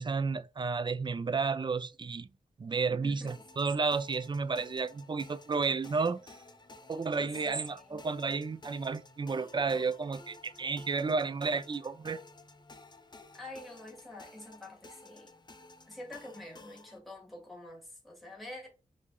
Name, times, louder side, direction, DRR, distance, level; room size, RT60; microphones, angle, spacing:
voice 1, 0.0-2.3 2.6-6.4 6.9-12.2, right 4 dB, 35° right, 0.4 m, -32 dB
voice 2, 2.9-3.4 7.2-8.0 13.3-15.3 15.9-18.7, left 1 dB, ahead, 1.6 m, -47 dB
sound 1, 3.3-17.0, left 2 dB, 30° left, 0.6 m, -54 dB
4.6 x 2.7 x 2.3 m
wide cardioid pair, 80°, 15 cm